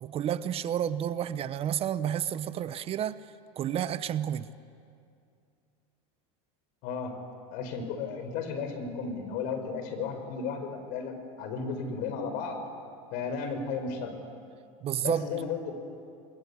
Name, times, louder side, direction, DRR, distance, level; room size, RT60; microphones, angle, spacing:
voice 1, 0.0-3.2 3.6-4.5 14.8-15.3, right 10 dB, 40° right, 14 dB, 0.9 m, -30 dB
voice 2, 6.8-7.1 7.5-12.6 13.1-14.1 15.0-15.7, left 5 dB, 60° left, 7 dB, 4.9 m, -34 dB
28.5 x 21.5 x 8.4 m, 2.4 s
supercardioid pair, 115°, 16 cm